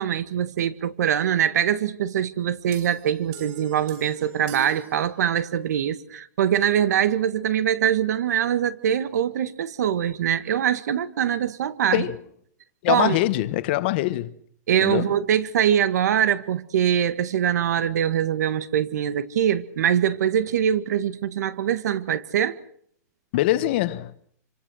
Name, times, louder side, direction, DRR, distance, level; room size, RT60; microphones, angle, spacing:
voice 1, 0.0-12.0 12.9-13.2 14.7-22.6, right 9 dB, 70° right, 1.6 m, -23 dB
sound 1, 2.7-5.7, right 6 dB, 35° right, 7.4 m, -42 dB
voice 2, 12.8-14.3 14.8-15.1 23.3-24.1, left 16 dB, 35° left, 1.2 m, -23 dB
26.5 x 26.0 x 6.3 m
supercardioid pair, 175°, 9 cm